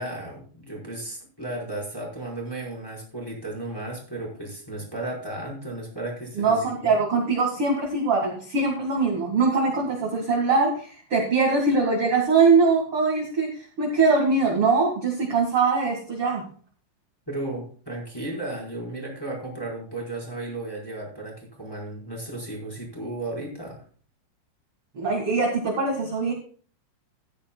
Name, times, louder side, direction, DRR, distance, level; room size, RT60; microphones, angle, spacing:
voice 1, 0.0-6.7 17.3-23.8, right 2 dB, 5° left, -2 dB, 4.0 m, -34 dB
voice 2, 6.4-13.5 13.8-16.4 25.0-26.3, right 4 dB, 50° right, 1 dB, 1.8 m, -22 dB
15.0 x 11.5 x 2.3 m, 0.43 s
omnidirectional pair, 5.5 m